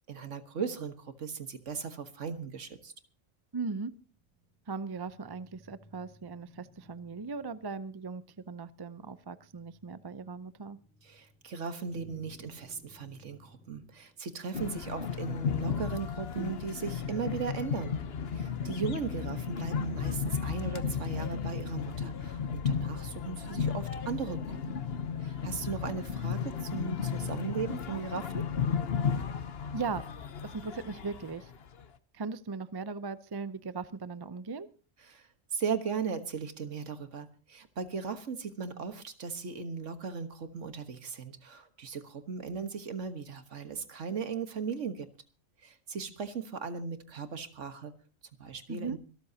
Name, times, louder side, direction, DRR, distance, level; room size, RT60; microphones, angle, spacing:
voice 1, 0.1-2.9 11.0-18.0 18.3-24.8 25.2-28.4 35.0-45.1 45.6-47.9 48.4-49.0, right 6 dB, 70° right, 9 dB, 1.7 m, -37 dB
voice 2, 3.5-3.9 4.7-10.8 29.7-30.0 30.4-31.5 32.1-34.7 48.7-49.0, right 4 dB, 30° right, 14 dB, 0.5 m, -38 dB
sound 1, 4.0-16.4, equal, ahead, 6.9 m, -61 dB
sound 2, 14.5-31.8, left 7 dB, 55° left, 1.1 m, -34 dB
25.5 x 13.0 x 2.8 m, 0.36 s
omnidirectional pair, 1.3 m